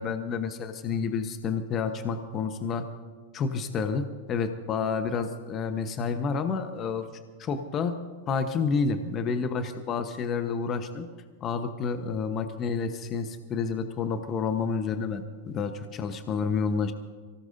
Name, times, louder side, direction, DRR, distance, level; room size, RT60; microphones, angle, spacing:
voice 1, 0.0-2.8 3.3-7.1 7.4-7.9 8.3-11.1 11.4-16.9, left 5 dB, 35° left, 8 dB, 1.1 m, -29 dB
24.0 x 17.5 x 2.7 m, 1.5 s
hypercardioid pair, 105°, 0 cm